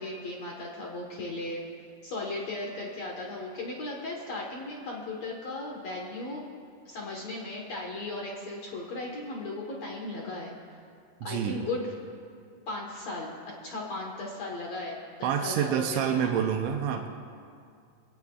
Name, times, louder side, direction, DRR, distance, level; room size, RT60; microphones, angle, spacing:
voice 1, 0.0-1.6 2.0-6.4 6.8-10.6 11.2-11.9 12.7-13.4 13.6-16.3, left 2 dB, 65° left, -1 dB, 1.7 m, -36 dB
voice 2, 11.2-11.6 15.2-17.1, right 8 dB, 90° right, 2 dB, 3.1 m, -28 dB
23.0 x 17.0 x 2.4 m, 2.3 s
omnidirectional pair, 5.1 m